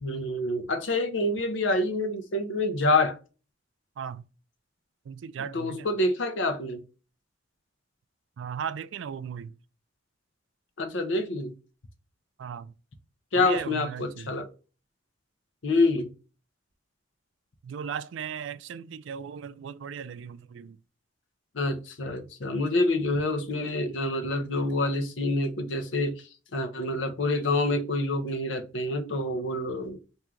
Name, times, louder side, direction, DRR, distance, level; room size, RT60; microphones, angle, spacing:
voice 1, 0.0-3.2 5.4-6.8 10.8-11.5 13.3-14.5 15.6-16.1 21.5-30.0, left 2 dB, 80° left, 0.8 m, -27 dB
voice 2, 5.1-5.9 8.4-9.5 12.4-12.7 13.4-14.3 17.6-20.8, right 7 dB, 75° right, 0.3 m, -37 dB
3.6 x 2.7 x 4.4 m
head